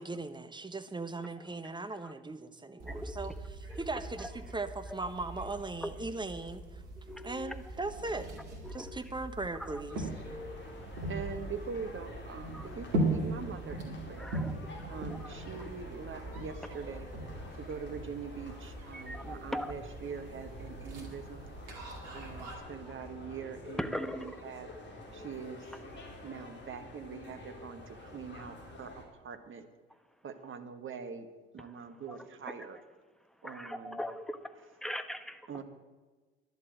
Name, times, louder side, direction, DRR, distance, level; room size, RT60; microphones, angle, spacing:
voice 1, 0.0-6.8 7.2-8.3 8.7-10.1, right 3 dB, 15° right, 1.1 m, -39 dB
sound 1, 2.8-22.5, right 2 dB, 75° right, 2.5 m, -40 dB
voice 2, 7.0-7.5 8.6-9.0 10.2-10.8 12.5-12.8 14.2-14.5 15.2-15.3 18.9-19.7 21.8-21.9 23.8-24.3 32.1-32.2 33.4-34.4 34.8-35.4, equal, ahead, 1.1 m, -40 dB
sound 2, 9.9-29.0, left 1 dB, 35° left, 3.7 m, -49 dB
voice 3, 11.1-14.3 14.9-17.1 17.6-21.4 22.1-24.7 25.1-25.7 26.2-28.9 29.2-29.7 30.2-31.3 31.5-32.8 33.4-34.0 35.5-35.6, right 6 dB, 40° right, 1.6 m, -43 dB
sound 3, 16.1-23.3, right 1 dB, 55° right, 4.0 m, -56 dB
11.0 x 8.3 x 8.8 m
hypercardioid pair, 55°, 32 cm